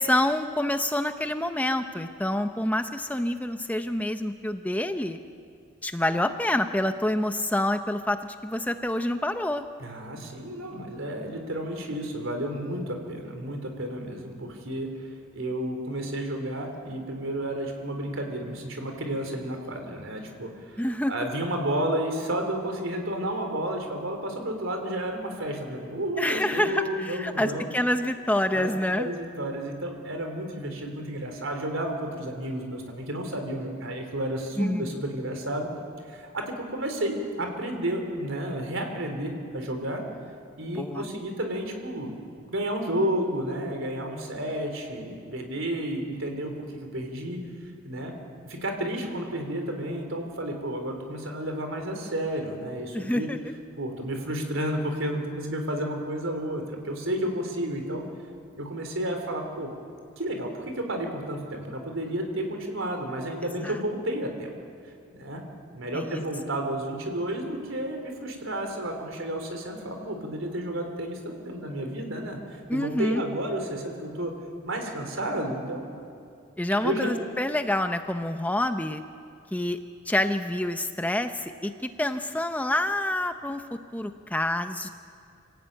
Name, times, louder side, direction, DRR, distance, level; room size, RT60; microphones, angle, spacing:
voice 1, 0.0-5.2 5.8-9.6 20.8-21.1 26.2-29.1 34.6-34.9 40.7-41.0 52.9-53.4 63.6-63.8 65.9-66.2 72.7-73.2 76.6-79.0 79.5-79.8 80.1-83.6 83.9-84.9, left 1 dB, 5° left, 8 dB, 0.6 m, -27 dB
voice 2, 9.8-27.7 28.5-28.7 29.0-35.7 36.1-40.0 40.6-42.2 42.5-47.4 47.8-48.1 48.5-53.3 53.8-58.0 58.5-59.7 60.2-64.5 65.1-65.4 65.7-74.3 74.6-75.9 76.8-77.1, right 1 dB, 70° right, 4 dB, 3.8 m, -31 dB
26.0 x 16.5 x 8.9 m, 2.5 s
head